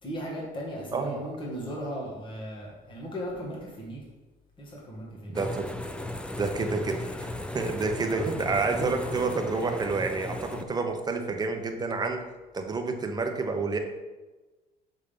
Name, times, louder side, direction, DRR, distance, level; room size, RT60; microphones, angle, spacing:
voice 1, 0.0-4.0 4.6-5.4 8.1-8.3, equal, 30° left, -4 dB, 1.8 m, -37 dB
voice 2, 0.9-1.3 5.3-5.7 6.4-12.2 12.5-13.8, right 4 dB, 25° right, 4 dB, 0.8 m, -29 dB
sound 1, 5.3-10.6, left 1 dB, 5° left, 0.4 m, -36 dB
6.5 x 3.7 x 5.2 m, 1.2 s
cardioid pair, 110°, 17 cm